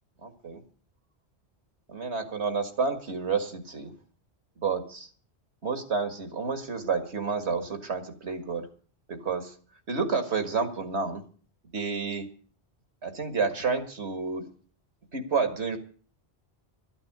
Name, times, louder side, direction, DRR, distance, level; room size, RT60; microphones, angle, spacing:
voice 1, 0.2-0.6 1.9-3.9 4.6-5.1 5.6-8.7 9.1-9.5 9.9-11.2 11.7-12.3 13.0-14.4 15.1-15.8, right 4 dB, 80° right, 7 dB, 2.2 m, -30 dB
13.0 x 8.8 x 7.9 m, 0.43 s
omnidirectional pair, 1.1 m